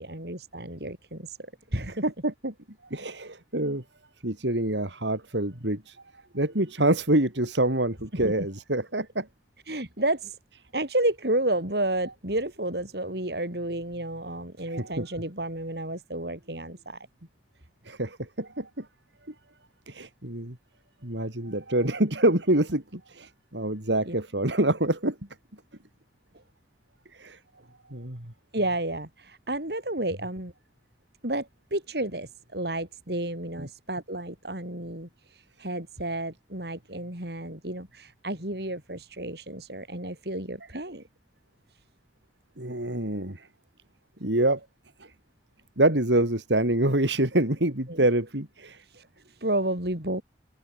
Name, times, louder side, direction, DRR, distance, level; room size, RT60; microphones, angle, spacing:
voice 1, 0.0-2.0 8.1-8.3 9.7-10.4 10.7-17.1 24.1-24.2 28.5-30.5 31.2-41.0 47.9-48.0 48.8-50.2, right 1 dB, 65° right, 6.2 m, -31 dB
voice 2, 2.0-2.5 2.9-3.8 4.2-6.0 6.3-9.3 14.7-15.1 17.8-18.9 19.9-20.6 21.0-25.2 27.1-27.4 27.9-28.3 33.6-33.7 42.6-43.5 44.2-44.6 45.0-45.1 45.8-48.8, right 1 dB, 90° right, 4.6 m, -26 dB
head